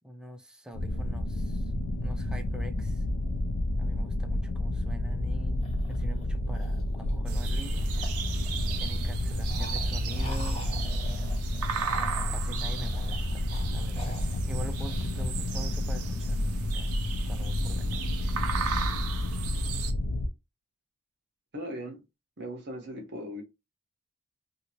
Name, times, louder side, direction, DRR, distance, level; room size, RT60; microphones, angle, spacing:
voice 1, 0.0-1.7 2.0-3.1 3.8-7.9 8.8-11.0 12.3-17.0 17.3-18.2, equal, 5° right, 0.4 m, -45 dB
sound 1, 0.7-20.3, left 1 dB, 90° left, 0.5 m, -30 dB
sound 2, 5.6-7.5 7.9-15.7, equal, 30° left, 1.4 m, -45 dB
sound 3, 7.3-19.9, right 7 dB, 70° right, 0.5 m, -37 dB
voice 2, 21.5-22.0 22.4-23.4, equal, 50° right, 1.0 m, -38 dB
2.8 x 2.6 x 2.9 m
head